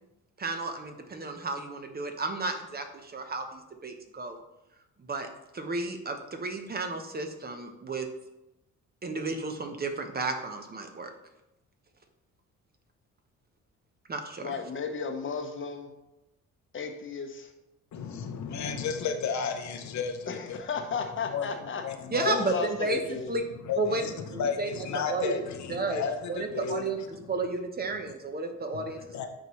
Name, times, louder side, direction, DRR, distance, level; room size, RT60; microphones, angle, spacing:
voice 1, 0.4-4.4 5.0-5.3 5.5-8.1 9.0-11.1 14.1-14.5 22.1-22.5 22.8-23.0 23.3-23.4 23.8-24.7 25.1-25.4 25.7-26.0 26.3-29.3, right 3 dB, 30° right, 5 dB, 0.9 m, -32 dB
voice 2, 14.4-15.9 16.7-17.5 20.3-21.8 22.3-23.4, left 5 dB, 40° left, 6 dB, 0.9 m, -34 dB
voice 3, 17.9-20.6 21.3-22.5 23.6-27.1 27.9-28.1 28.7-29.3, left 6 dB, 65° left, 6 dB, 0.8 m, -33 dB
8.8 x 4.5 x 3.1 m, 0.92 s
cardioid pair, 90°, 30 cm